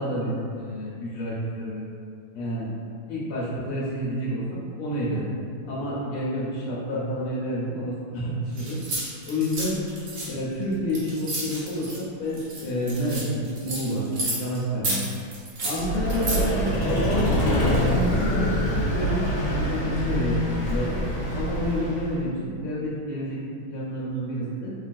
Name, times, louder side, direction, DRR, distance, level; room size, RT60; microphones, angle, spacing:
voice 1, 0.0-1.9 2.3-2.7 3.1-5.3 5.7-8.8 9.3-9.8 10.3-15.0 15.6-21.0 21.3-23.4 23.7-24.7, equal, 85° left, -6 dB, 1.5 m, -29 dB
sound 1, 8.6-12.0 12.3-14.6 14.8-16.4, right 2 dB, 60° right, 1.1 m, -31 dB
Vehicle, 15.8-22.2, equal, 70° left, 1.3 m, -25 dB
3.4 x 2.2 x 2.5 m, 2.4 s
omnidirectional pair, 2.3 m